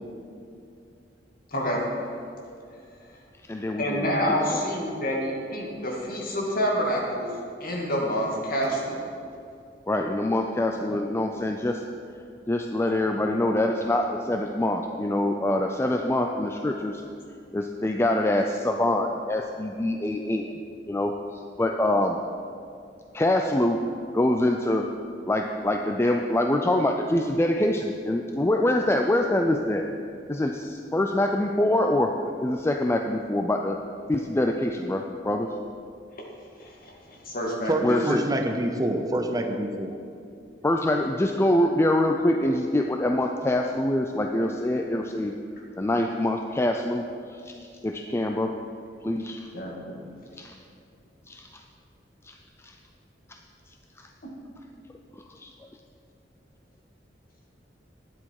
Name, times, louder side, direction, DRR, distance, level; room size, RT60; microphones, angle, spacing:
voice 1, 1.5-1.8 3.8-7.3 7.6-9.0 36.6-38.0 49.5-50.0, equal, 55° left, -2 dB, 2.4 m, -28 dB
voice 2, 3.5-4.1 4.5-4.6 9.9-11.8 12.5-17.0 17.5-20.5 20.9-22.2 23.1-23.8 24.1-24.8 25.3-29.8 30.3-32.1 32.4-33.8 34.1-35.5 37.8-38.2 40.6-45.3 45.8-47.1 47.4-47.5 47.8-48.5 49.0-49.5 50.4-50.5 51.3-51.5 52.2-52.3 52.6-52.7 54.0-54.1 55.4-55.5, left 1 dB, 15° left, 3 dB, 0.4 m, -25 dB
voice 3, 37.7-40.0, right 1 dB, 20° right, 5 dB, 0.7 m, -26 dB
12.0 x 10.0 x 4.8 m, 2.5 s
head